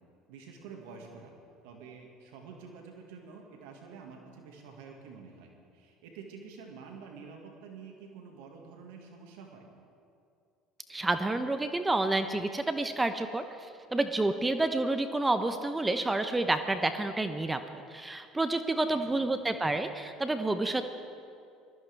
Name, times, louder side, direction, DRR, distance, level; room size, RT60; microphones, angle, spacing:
voice 1, 0.3-1.3 1.6-9.6 19.1-19.5, right 5 dB, 75° right, 2 dB, 1.9 m, -48 dB
voice 2, 10.9-17.6 17.9-20.9, right 2 dB, 15° right, 9 dB, 0.9 m, -29 dB
20.5 x 14.5 x 3.5 m, 2.4 s
hypercardioid pair, 70°, 0 cm